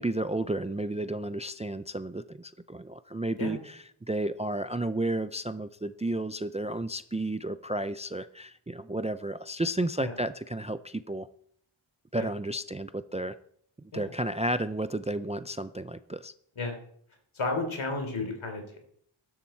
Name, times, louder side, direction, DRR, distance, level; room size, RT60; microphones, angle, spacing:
voice 1, 0.0-11.3 12.1-13.4 13.9-16.3, right 1 dB, 15° right, 13 dB, 0.4 m, -32 dB
voice 2, 17.4-18.8, left 3 dB, 70° left, 4 dB, 3.7 m, -32 dB
13.5 x 11.0 x 4.5 m, 0.65 s
wide cardioid pair, 125°, 49 cm